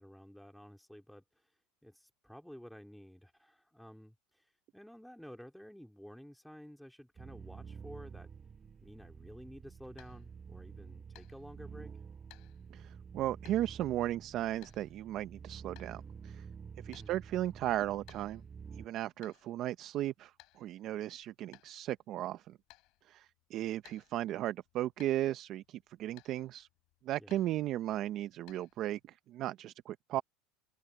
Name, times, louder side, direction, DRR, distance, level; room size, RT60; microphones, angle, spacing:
voice 1, 0.0-1.5 1.8-8.3 8.8-11.9 16.9-17.1 27.2-27.4, equal, ahead, 2.6 m, -52 dB
sound 1, 7.2-18.9, right 6 dB, 25° right, 1.4 m, -50 dB
sound 2, 9.3-29.1, left 21 dB, 60° left, 3.6 m, -65 dB
voice 2, 12.7-16.4 16.8-18.4 18.8-20.3 20.6-22.6 23.1-26.7 27.0-30.2, right 13 dB, 50° right, 0.6 m, -36 dB
supercardioid pair, 125°, 0 cm